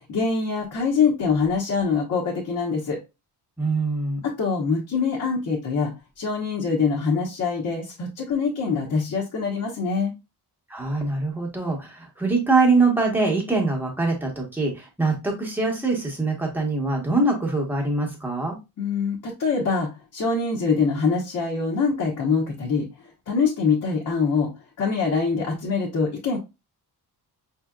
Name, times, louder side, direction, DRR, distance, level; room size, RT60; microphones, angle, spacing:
voice 1, 0.1-3.0 4.2-5.9 6.2-10.1 18.8-22.9 23.3-24.5 24.8-26.4, left 5 dB, 45° left, -3 dB, 1.1 m, -24 dB
voice 2, 3.6-4.2 10.7-18.6, right 3 dB, 5° right, 0 dB, 1.1 m, -23 dB
5.5 x 2.8 x 2.3 m, 0.24 s
wide cardioid pair, 175°, 41 cm